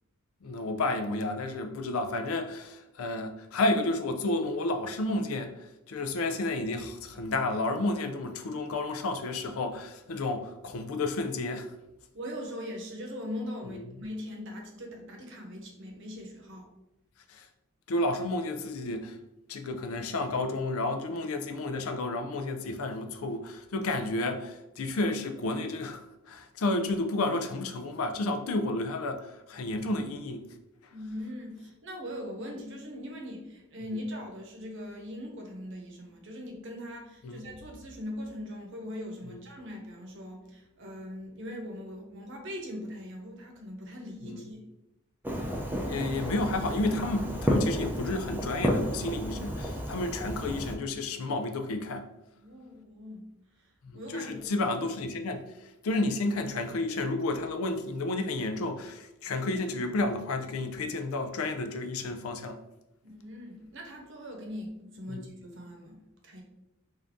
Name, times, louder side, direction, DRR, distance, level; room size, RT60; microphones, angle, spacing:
voice 1, 0.4-11.7 13.9-14.0 17.3-17.5 17.9-19.2 19.5-30.5 37.2-37.4 39.2-39.4 44.2-44.5 45.8-52.1 53.9-55.5 55.8-62.6 65.1-65.3, left 2 dB, 85° left, 0.5 m, -31 dB
voice 2, 12.1-16.7 30.9-44.6 52.3-53.2 53.6-54.5 63.0-66.4, left 1 dB, 65° right, 0.9 m, -41 dB
Fireworks, 45.2-50.7, equal, 10° right, 0.5 m, -31 dB
3.8 x 2.6 x 3.5 m
head